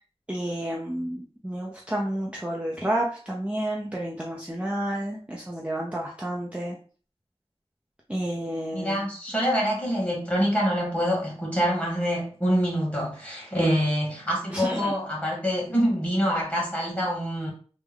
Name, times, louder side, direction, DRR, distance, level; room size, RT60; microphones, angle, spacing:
voice 1, 0.3-6.8 8.1-9.0 14.5-14.9, right 1 dB, 10° right, -2 dB, 0.5 m, -30 dB
voice 2, 8.7-17.5, equal, 15° left, -3 dB, 1.6 m, -25 dB
3.4 x 2.1 x 3.4 m, 0.41 s
wide cardioid pair, 50°, 11 cm